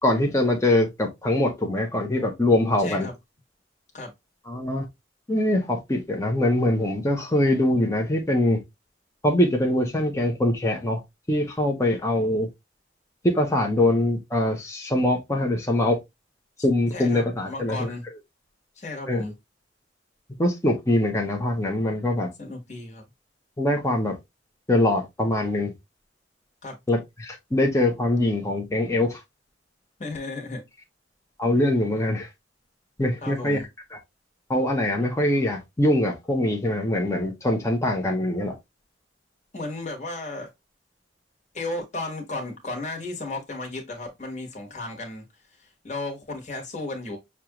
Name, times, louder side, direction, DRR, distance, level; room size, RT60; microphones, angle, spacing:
voice 1, 0.0-3.1 4.5-4.9 5.3-8.6 9.2-11.0 11.3-12.5 13.2-16.0 16.6-17.9 19.1-19.2 20.4-22.3 23.6-24.2 24.7-25.7 26.9-29.2 31.4-32.3 33.0-33.6 34.5-38.5, left 1 dB, 15° left, 0.7 m, -23 dB
voice 2, 2.8-3.1 3.9-4.1 16.9-18.1 18.8-19.3 22.4-23.0 26.6-26.8 30.0-30.6 33.2-33.7 39.5-40.5 41.5-45.2 45.6-47.2, left 2 dB, 40° left, 1.3 m, -34 dB
6.3 x 2.4 x 2.9 m
head